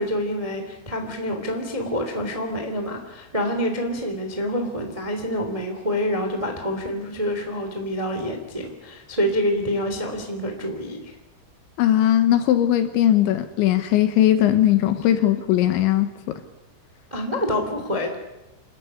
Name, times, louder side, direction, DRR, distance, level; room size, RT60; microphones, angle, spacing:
voice 1, 0.0-11.1 17.1-18.1, equal, 15° right, 4 dB, 1.0 m, -27 dB
voice 2, 11.8-16.4, left 12 dB, 75° left, 9 dB, 3.1 m, -19 dB
27.0 x 13.5 x 9.9 m, 1.0 s
omnidirectional pair, 5.9 m